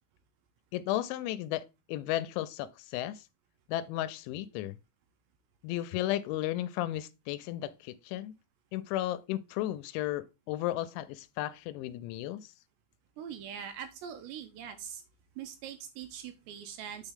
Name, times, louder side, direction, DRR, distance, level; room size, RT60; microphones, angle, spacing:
voice 1, 0.7-1.6 1.9-3.2 3.7-4.8 5.6-8.3 8.7-12.5, left 14 dB, 85° left, 2.9 m, -34 dB
voice 2, 13.2-15.0 15.4-17.1, right 8 dB, 80° right, 2.6 m, -42 dB
9.4 x 4.5 x 3.6 m
omnidirectional pair, 5.5 m